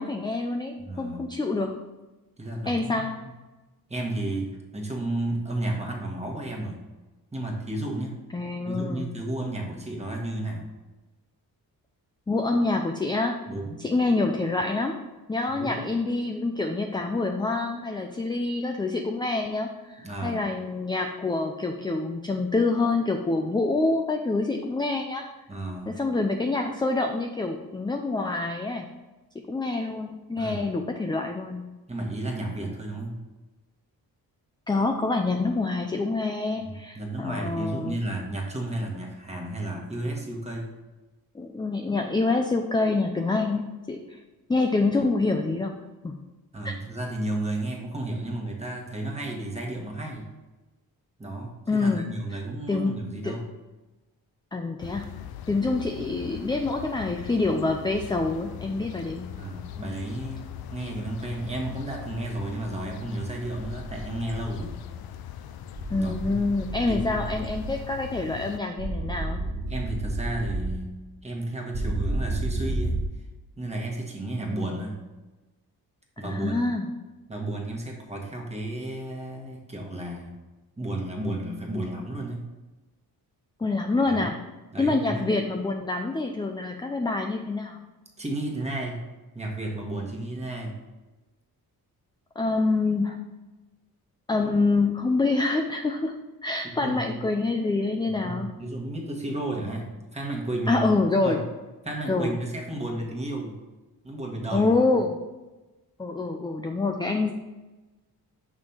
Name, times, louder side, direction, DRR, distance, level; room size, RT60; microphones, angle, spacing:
voice 1, 0.0-1.8 2.7-3.1 8.3-9.1 12.3-13.4 13.8-15.0 15.3-25.3 25.9-28.9 29.5-31.7 34.7-38.0 41.3-43.6 43.9-44.2 44.5-45.7 46.0-46.2 46.6-46.7 51.7-52.1 52.7-53.0 53.2-53.4 54.5-55.1 55.5-59.3 65.9-69.4 76.2-76.9 83.6-84.4 84.8-87.8 92.4-93.2 94.3-96.1 96.4-98.5 100.7-101.4 102.1-102.4 104.5-105.2 106.0-107.3, left 3 dB, 10° left, 4 dB, 0.4 m, -26 dB
voice 2, 0.8-1.3 2.4-3.3 3.9-6.8 7.3-8.2 8.6-10.6 13.5-13.9 15.6-15.9 20.0-20.5 25.5-26.0 30.4-30.6 31.9-33.2 36.6-40.7 46.5-50.3 51.2-53.5 59.3-64.8 65.9-66.4 66.9-67.3 69.7-70.9 71.2-73.0 73.6-75.0 76.2-76.6 77.3-80.3 80.8-82.5 84.1-84.3 84.7-85.3 88.2-89.0 89.3-90.8 96.6-97.2 98.0-101.4 101.8-103.6 104.0-104.7, right 1 dB, 15° right, 0 dB, 1.4 m, -33 dB
sound 1, 54.8-68.6, left 10 dB, 70° left, 0.5 m, -40 dB
sound 2, 63.6-64.7 65.8-67.8 68.8-70.8 71.7-73.0, right 2 dB, 45° right, 1.0 m, -31 dB
6.1 x 3.2 x 5.6 m, 1.2 s
cardioid pair, 85°, 38 cm